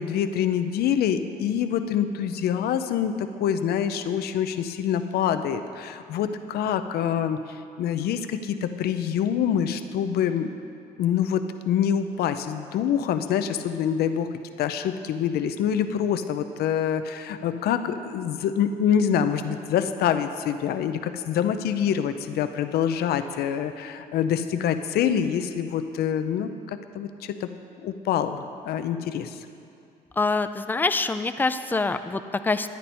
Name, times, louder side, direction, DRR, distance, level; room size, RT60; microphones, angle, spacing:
voice 1, 0.0-10.5 11.0-14.3 14.6-27.5 27.8-29.4, left 8 dB, 70° left, 9 dB, 0.6 m, -26 dB
voice 2, 30.2-32.7, left 3 dB, 10° left, 10 dB, 0.4 m, -25 dB
10.5 x 9.6 x 4.3 m, 2.5 s
cardioid pair, 110°, 17 cm